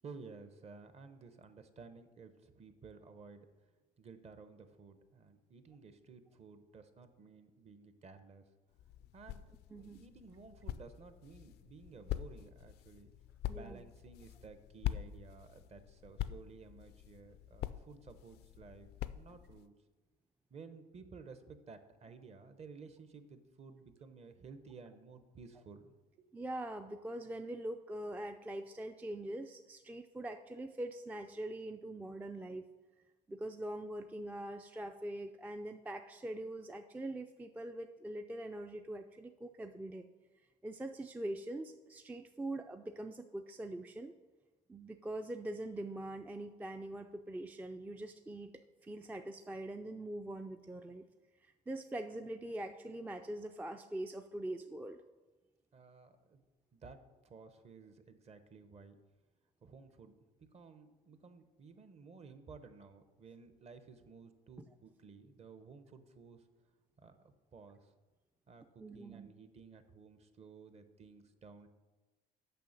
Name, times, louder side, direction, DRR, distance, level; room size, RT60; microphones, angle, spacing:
voice 1, 0.0-3.5 4.0-8.4 9.1-13.1 13.5-18.9 19.1-19.7 20.5-26.3 55.7-56.4 56.7-59.0 59.6-60.1 60.5-66.4 67.0-67.9 68.5-71.7, right 4 dB, 40° right, 10 dB, 0.8 m, -55 dB
sound 1, 8.7-19.7, left 13 dB, 75° left, 0.4 m, -44 dB
voice 2, 9.7-10.0 13.5-13.8 26.3-32.7 33.3-40.0 40.6-44.1 44.7-48.5 48.8-51.1 51.4-55.0 68.8-69.3, right 1 dB, 10° right, 7 dB, 0.3 m, -43 dB
6.8 x 5.5 x 6.5 m, 1.2 s
cardioid pair, 110°, 17 cm